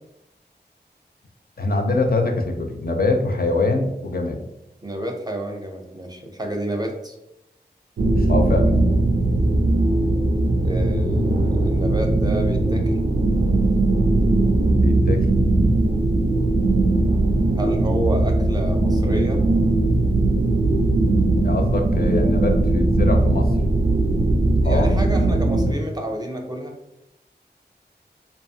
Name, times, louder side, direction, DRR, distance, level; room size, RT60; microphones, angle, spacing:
voice 1, 1.6-4.4 8.2-8.7 14.8-15.2 21.4-23.5 24.6-24.9, left 2 dB, 55° left, 3 dB, 0.4 m, -23 dB
voice 2, 4.8-7.2 10.6-13.0 17.5-19.4 24.6-26.7, right 1 dB, 20° right, 2 dB, 0.5 m, -29 dB
sound 1, 8.0-25.7, right 2 dB, 85° right, 0.4 m, -19 dB
2.7 x 2.3 x 2.7 m, 0.86 s
wide cardioid pair, 55°, 18 cm